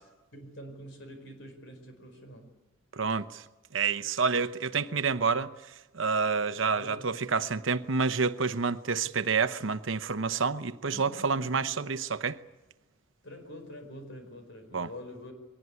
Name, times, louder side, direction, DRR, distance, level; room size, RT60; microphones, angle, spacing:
voice 1, 0.3-2.5 4.7-4.8 5.1-5.2 6.5-7.4 9.0-9.1 10.9-11.9 13.2-15.3, equal, 60° left, 4.9 m, -46 dB
voice 2, 2.9-3.4 3.7-5.5 5.9-12.4 14.7-14.9, right 5 dB, 70° right, 0.9 m, -28 dB
22.5 x 19.0 x 9.7 m
head